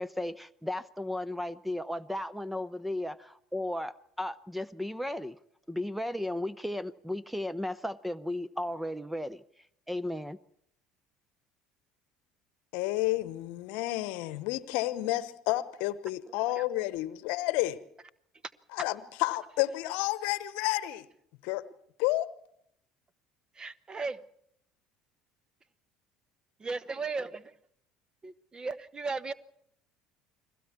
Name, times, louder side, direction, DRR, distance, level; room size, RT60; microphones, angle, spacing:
voice 1, 0.0-5.4 5.7-9.4 9.9-10.4, left 1 dB, 5° right, 0.7 m, -35 dB
voice 2, 12.7-17.8 18.7-21.1 21.4-21.6 22.0-22.3, left 17 dB, 65° left, 1.0 m, -30 dB
voice 3, 23.5-24.2 26.6-27.5 28.2-29.3, right 4 dB, 25° right, 1.1 m, -36 dB
29.5 x 21.0 x 4.5 m
figure-of-eight pair, 65°, 3 cm